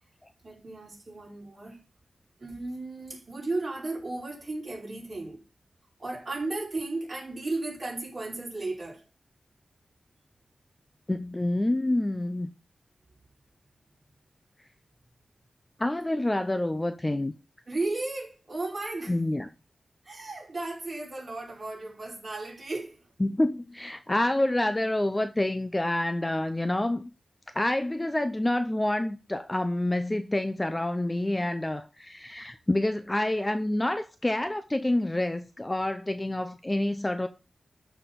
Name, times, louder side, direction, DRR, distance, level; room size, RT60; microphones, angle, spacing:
voice 1, 0.4-1.8 2.4-5.4 6.0-9.0 17.7-19.2 20.0-23.1, right 2 dB, 40° right, 5.1 m, -35 dB
voice 2, 11.1-12.5 15.8-17.3 19.1-19.5 23.2-27.1 27.5-37.3, left 1 dB, 15° left, 0.6 m, -27 dB
13.0 x 4.5 x 5.3 m
wide cardioid pair, 120°, 0 cm